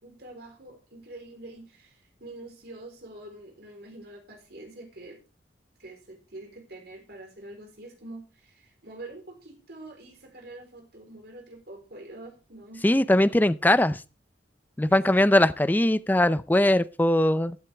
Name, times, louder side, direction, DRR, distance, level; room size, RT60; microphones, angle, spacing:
voice 1, 0.0-5.2 5.8-12.8 14.9-15.3, right 2 dB, 60° right, 3.9 m, -45 dB
voice 2, 12.8-14.0 14.8-17.6, left 1 dB, 10° left, 0.5 m, -21 dB
15.0 x 9.1 x 3.4 m
head